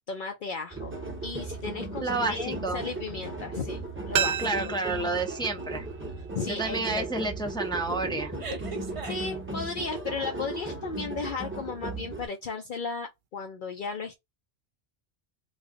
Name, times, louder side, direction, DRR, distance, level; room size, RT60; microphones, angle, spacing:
voice 1, 0.1-1.0 1.2-4.4 6.3-7.3 9.0-14.2, left 4 dB, 60° left, 0.7 m, -35 dB
sound 1, 0.7-12.3, right 2 dB, 15° right, 0.8 m, -36 dB
voice 2, 2.0-2.8 4.4-5.9 6.5-8.3, right 3 dB, 5° left, 0.5 m, -30 dB
sound 2, 4.1-6.9 7.2-7.3, right 7 dB, 75° right, 0.8 m, -33 dB
sound 3, 6.6-6.9 7.3-7.5 8.4-9.9, right 3 dB, 35° right, 0.6 m, -39 dB
3.2 x 2.3 x 3.7 m
omnidirectional pair, 1.0 m